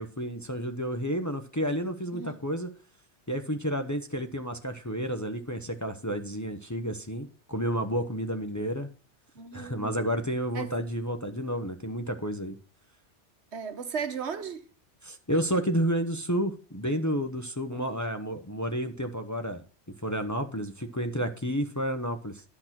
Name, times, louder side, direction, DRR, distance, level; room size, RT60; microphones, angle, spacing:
voice 1, 0.0-2.7 3.3-8.9 9.5-12.6 15.0-19.6 20.0-22.4, equal, 15° left, 0.9 m, -31 dB
voice 2, 9.3-9.9 10.5-10.7 13.5-14.6 17.7-17.9, right 6 dB, 65° right, 1.3 m, -36 dB
11.5 x 6.2 x 5.9 m
omnidirectional pair, 1.2 m